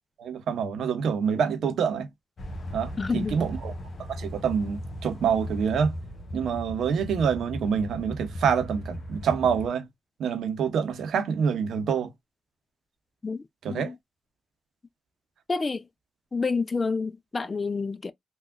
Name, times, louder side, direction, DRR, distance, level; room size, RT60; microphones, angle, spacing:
voice 1, 0.2-2.1 2.7-3.7 4.1-5.9 6.3-9.9 10.2-12.1 13.6-13.9, right 7 dB, 80° right, 0.7 m, -26 dB
sound 1, 2.4-9.7, equal, 60° left, 0.9 m, -37 dB
voice 2, 3.0-3.4 13.2-14.0 15.5-15.9 16.3-18.1, left 4 dB, 40° left, 0.5 m, -29 dB
3.5 x 2.4 x 2.4 m
supercardioid pair, 45°, 0 cm